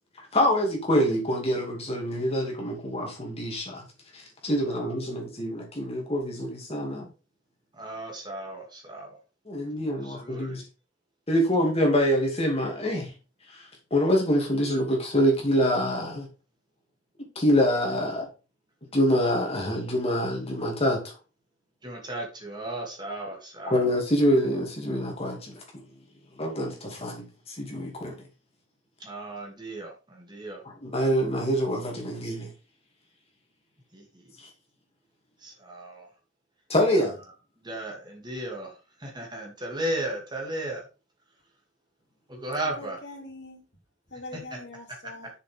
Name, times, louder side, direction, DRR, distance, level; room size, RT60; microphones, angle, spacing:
voice 1, 0.3-3.8 4.1-7.1 9.5-10.6 11.3-13.1 13.5-13.7 13.9-16.3 17.4-18.3 18.9-21.0 23.7-25.5 26.4-28.2 30.8-32.5 34.4-34.5 36.7-37.2, equal, 30° left, 2.7 m, -25 dB
voice 2, 7.7-9.2 10.0-10.6 21.8-23.8 29.0-30.6 33.9-34.0 35.4-36.1 37.0-37.1 37.6-38.7 39.0-40.9 42.3-43.0 44.3-44.6, right 1 dB, 20° right, 2.7 m, -35 dB
voice 3, 42.8-43.6 44.1-45.3, left 2 dB, 60° left, 2.9 m, -42 dB
7.5 x 6.7 x 3.7 m
head